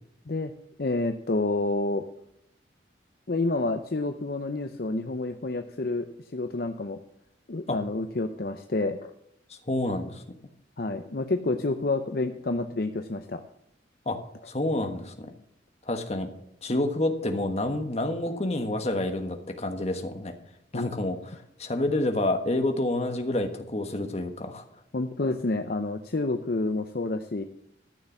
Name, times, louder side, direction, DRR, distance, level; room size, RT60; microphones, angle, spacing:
voice 1, 0.8-2.0 3.3-6.1 6.3-7.0 7.5-9.1 10.8-13.4 20.7-20.9 24.9-27.4, left 2 dB, 55° left, 7 dB, 0.7 m, -29 dB
voice 2, 9.7-10.2 14.0-14.2 14.5-15.3 15.8-16.3 16.6-20.3 20.7-21.2 21.6-24.6, left 1 dB, 35° left, 6 dB, 1.4 m, -28 dB
13.0 x 6.7 x 7.1 m, 0.78 s
head